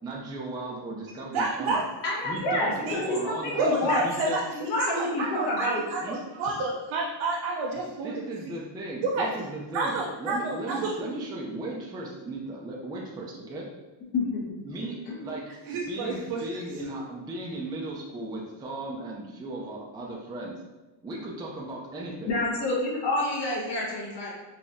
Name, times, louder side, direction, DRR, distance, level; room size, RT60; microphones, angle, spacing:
voice 1, 0.0-1.8 2.2-4.4 6.0-6.3 8.0-13.7 14.6-15.6 15.9-20.6 21.0-22.3, right 2 dB, 10° right, -2 dB, 0.3 m, -36 dB
voice 2, 1.3-1.8 3.6-8.5 9.0-9.3 9.7-10.9 15.6-16.4, right 3 dB, 85° right, -3 dB, 0.6 m, -29 dB
voice 3, 2.0-4.0 4.5-5.8 14.1-14.3 15.1-15.2 22.3-24.3, left 2 dB, 65° left, -5 dB, 1.3 m, -28 dB
4.0 x 2.9 x 2.5 m, 1.1 s
cardioid pair, 150°, 46 cm